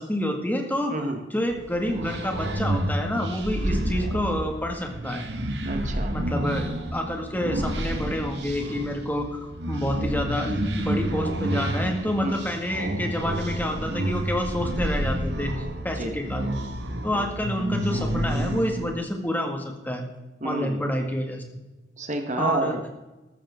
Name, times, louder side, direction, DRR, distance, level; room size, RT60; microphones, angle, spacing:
voice 1, 0.0-5.2 6.1-16.5 17.0-20.0 20.4-21.4 22.4-22.8, equal, 10° left, 3 dB, 2.0 m, -28 dB
voice 2, 0.9-1.2 5.6-6.2 12.2-12.4 15.9-16.2 17.1-17.3 20.4-20.8 22.0-22.9, right 2 dB, 45° right, 5 dB, 1.3 m, -29 dB
sound 1, 1.5-18.9, right 1 dB, 70° right, 1.7 m, -29 dB
14.5 x 13.0 x 3.7 m, 1.1 s
head